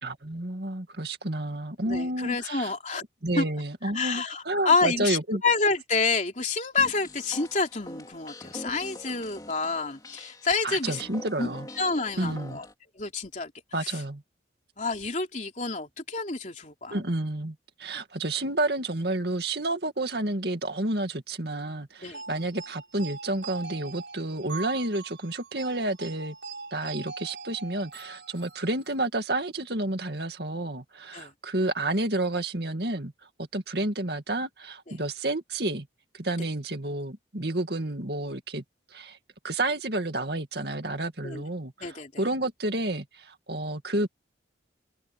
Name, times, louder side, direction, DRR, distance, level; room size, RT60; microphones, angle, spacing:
voice 1, 0.0-2.7 3.2-5.4 10.6-11.7 12.2-12.6 13.7-14.2 16.9-26.3 26.7-33.1 33.5-35.9 36.1-38.6 38.9-39.2 39.4-44.1, right 2 dB, 55° right, 2.3 m, -30 dB
voice 2, 1.8-3.0 3.4-3.5 3.8-11.0 11.4-11.5 11.8-12.6 13.0-13.5 13.8-14.0 14.8-17.0 22.0-22.2 31.1-31.3 34.9-35.0 41.2-41.4 41.8-42.2, left 4 dB, 40° left, 3.4 m, -28 dB
sound 1, 6.7-12.7, left 1 dB, 20° left, 3.4 m, -44 dB
sound 2, 22.1-29.0, right 4 dB, 75° right, 4.8 m, -42 dB
head